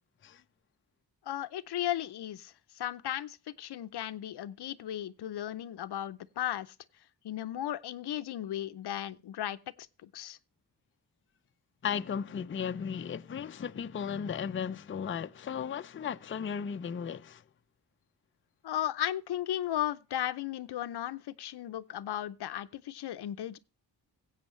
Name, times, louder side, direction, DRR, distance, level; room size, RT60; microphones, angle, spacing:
voice 1, 1.3-6.7 7.2-9.6 10.0-10.4 18.6-23.6, left 12 dB, 75° left, 0.7 m, -35 dB
voice 2, 11.8-17.4, left 7 dB, 30° left, 0.5 m, -35 dB
16.0 x 8.3 x 3.1 m
cardioid pair, 70°, 40 cm